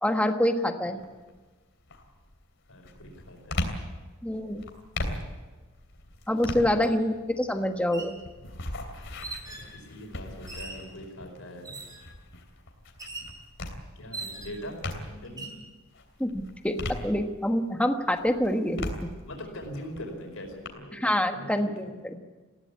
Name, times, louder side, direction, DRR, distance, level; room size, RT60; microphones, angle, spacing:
voice 1, 0.0-1.0 4.2-4.7 6.3-8.2 16.2-19.1 20.9-21.8, left 1 dB, 5° left, 5 dB, 1.4 m, -26 dB
sound 1, 1.0-1.4 1.9-15.4 15.8-17.7 18.1-20.7, left 1 dB, 60° left, 3.1 m, -38 dB
voice 2, 2.7-3.8 6.8-7.2 9.4-11.8 13.9-15.5 19.2-21.0 21.3-22.2, equal, 75° left, 2 dB, 4.8 m, -42 dB
sound 2, 6.8-6.9 7.8-8.2 9.2-9.7 10.5-10.9 11.6-12.1 13.0-13.4 14.1-14.7 15.2-15.6, right 3 dB, 20° right, 4.4 m, -40 dB
20.5 x 16.0 x 8.6 m, 1.3 s
head